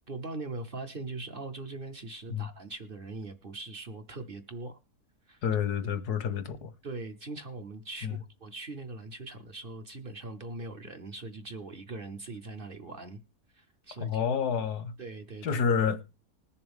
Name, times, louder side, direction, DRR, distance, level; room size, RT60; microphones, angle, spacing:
voice 1, 0.1-4.8 5.3-5.4 5.8-5.9 6.8-13.2 13.5-14.2 15.0-15.6, right 2 dB, 45° right, 0.9 m, -41 dB
voice 2, 5.4-6.7 8.0-8.1 14.0-14.9 15.4-16.0, left 7 dB, 85° left, 1.6 m, -29 dB
20.5 x 7.0 x 3.5 m
omnidirectional pair, 1.7 m